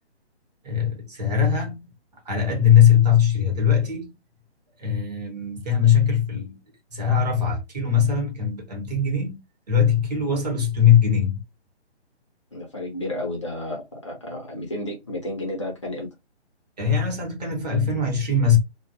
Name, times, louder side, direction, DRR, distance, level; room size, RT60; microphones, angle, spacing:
voice 1, 0.6-1.8 2.3-4.1 4.8-6.6 6.9-9.4 9.7-11.4 16.8-18.6, left 7 dB, 40° right, 1.0 m, -20 dB
voice 2, 12.5-16.1, left 1 dB, 25° left, 0.6 m, -32 dB
2.2 x 2.2 x 2.7 m
hypercardioid pair, 165°, 33 cm